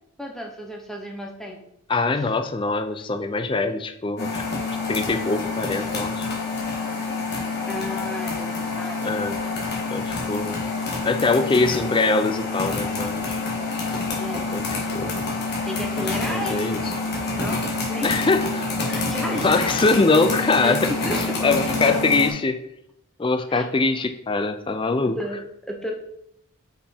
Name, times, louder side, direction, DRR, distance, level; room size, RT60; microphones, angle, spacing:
voice 1, 0.2-1.6 2.2-2.3 7.7-9.2 14.2-14.5 15.6-16.8 17.3-18.1 18.9-19.7 20.6-22.0 23.5-23.7 25.0-25.9, left 1 dB, ahead, 1 dB, 0.9 m, -33 dB
voice 2, 1.9-4.4 4.9-6.3 9.0-9.4 9.9-10.7 11.0-13.4 14.4-14.6 14.9-15.3 16.3-16.8 18.0-18.7 19.3-20.9 21.4-22.6 23.2-25.2, left 3 dB, 25° left, 8 dB, 0.4 m, -23 dB
sound 1, 4.2-22.3, left 3 dB, 50° left, 1.5 m, -27 dB
5.2 x 5.1 x 4.4 m, 0.76 s
head